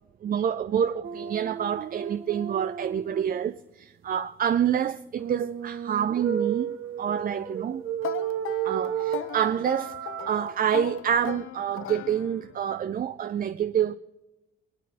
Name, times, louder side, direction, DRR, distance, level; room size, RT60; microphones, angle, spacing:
voice 1, 0.2-7.8 8.6-9.9 10.2-14.0, right 9 dB, 45° right, 0.5 m, -27 dB
sound 1, 1.0-3.4 5.2-10.4, right 9 dB, 75° right, 1.8 m, -33 dB
sound 2, 8.0-12.6, left 10 dB, 75° left, 0.6 m, -38 dB
24.0 x 9.5 x 4.2 m
cardioid pair, 145°, 21 cm